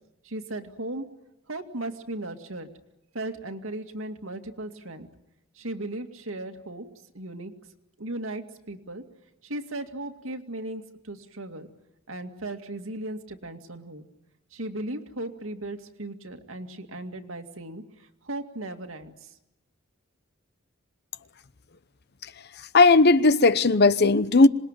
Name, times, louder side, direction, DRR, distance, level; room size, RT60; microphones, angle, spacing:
voice 1, 0.2-1.1 1.5-2.7 3.1-5.1 5.6-6.9 7.1-7.5 8.0-9.0 9.4-11.7 12.1-14.0 14.5-19.3, right 1 dB, 75° right, 2.3 m, -36 dB
voice 2, 22.2-24.5, left 3 dB, 55° left, 0.9 m, -18 dB
26.5 x 20.5 x 9.2 m
head